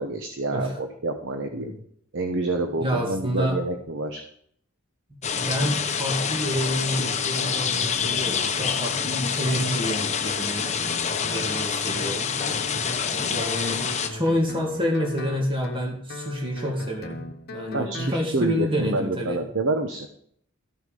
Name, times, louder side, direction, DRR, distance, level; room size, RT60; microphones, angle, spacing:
voice 1, 0.0-1.7 2.1-4.2 17.7-20.1, right 2 dB, 60° right, 5 dB, 1.0 m, -28 dB
voice 2, 2.8-3.6 5.4-10.7 11.2-12.4 13.1-19.4, equal, 25° right, 1 dB, 2.2 m, -28 dB
sound 1, 5.2-14.1, left 6 dB, 35° left, 0.8 m, -27 dB
Guitar, 10.8-18.2, left 2 dB, 50° left, 1.2 m, -38 dB
13.0 x 6.5 x 5.2 m, 0.66 s
head